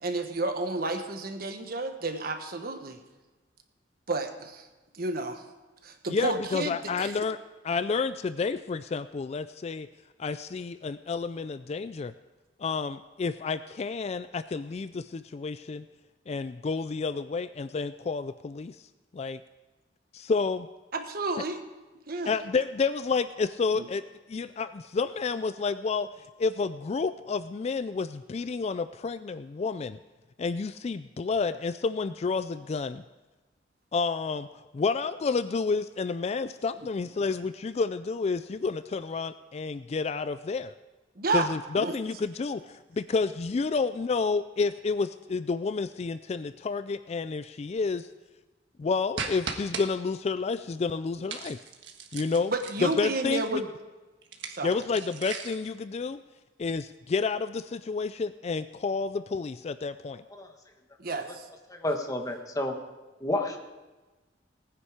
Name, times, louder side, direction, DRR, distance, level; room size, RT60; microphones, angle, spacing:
voice 1, 0.0-3.0 4.1-4.7 4.9-5.4 5.8-7.1 20.9-21.6 22.1-22.3 23.8-23.9 41.2-41.5 41.8-41.9 52.5-53.7 54.5-54.8 61.0-61.5, right 3 dB, 55° right, 6 dB, 1.3 m, -31 dB
voice 2, 6.1-7.4 7.6-9.9 10.2-12.1 12.6-15.8 16.3-18.8 19.1-19.4 20.1-20.7 22.3-24.0 24.3-26.1 26.4-30.0 30.4-33.0 33.9-34.5 34.7-40.7 41.3-48.1 48.8-51.6 52.1-52.5 52.8-53.6 54.6-56.2 56.6-60.2, left 4 dB, 35° left, 13 dB, 0.3 m, -30 dB
sound 1, 49.2-49.9 51.3-53.2 54.2-55.7, right 5 dB, 75° right, 1.5 m, -37 dB
voice 3, 60.1-60.5 61.7-62.8 63.2-63.6, left 1 dB, 20° left, 3 dB, 1.5 m, -31 dB
18.5 x 9.9 x 4.9 m, 1.2 s
head